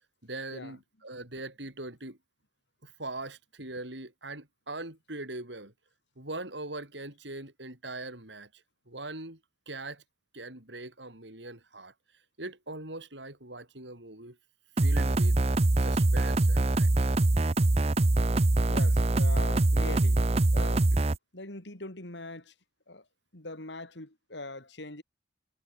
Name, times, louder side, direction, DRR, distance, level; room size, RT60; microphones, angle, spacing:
voice 1, 0.2-2.2 2.8-5.7 6.2-9.4 9.7-10.0 10.3-11.9 12.4-14.4 14.8-15.4 15.8-17.2, right 2 dB, 75° right, 7.1 m, -41 dB
sound 1, 14.8-21.2, right 2 dB, 35° right, 0.7 m, -24 dB
voice 2, 18.7-20.2 20.5-20.9 21.3-22.5 22.9-23.0 23.3-25.0, left 2 dB, 75° left, 4.0 m, -42 dB
head